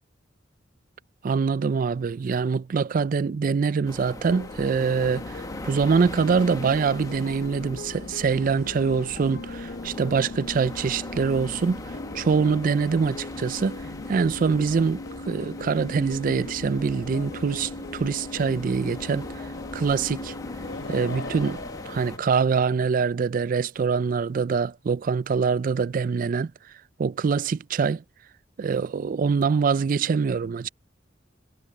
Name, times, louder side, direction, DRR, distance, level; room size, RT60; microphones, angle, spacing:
voice 1, 1.2-11.8 12.1-13.8 14.1-19.3 19.7-20.3 20.9-26.5 27.0-28.0 28.6-30.7, right 5 dB, 45° right, 0.4 m, -24 dB
sound 1, 3.9-22.2, left 1 dB, 20° left, 1.0 m, -41 dB
sound 2, 4.3-21.6, left 3 dB, 55° left, 0.6 m, -39 dB
sound 3, 20.5-22.9, left 3 dB, 80° left, 2.9 m, -39 dB
head